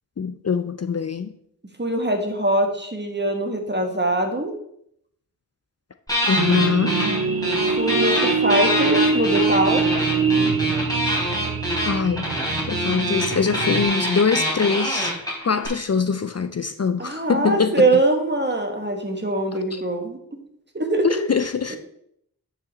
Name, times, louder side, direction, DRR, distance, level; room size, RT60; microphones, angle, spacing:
voice 1, 0.2-1.3 6.3-7.0 11.8-12.3 12.7-15.1 15.4-17.9 19.7-19.8 21.0-21.8, left 5 dB, 45° left, 0.5 m, -23 dB
voice 2, 1.8-4.5 7.8-9.9 17.0-20.4 20.7-21.3 21.7-21.8, right 1 dB, 30° right, 1.5 m, -22 dB
sound 1, 6.1-7.2 7.4-15.7, equal, 10° left, 3.3 m, -25 dB
sound 2, 6.4-13.8, right 4 dB, 80° right, 0.8 m, -24 dB
9.4 x 5.1 x 4.1 m
wide cardioid pair, 50°, 36 cm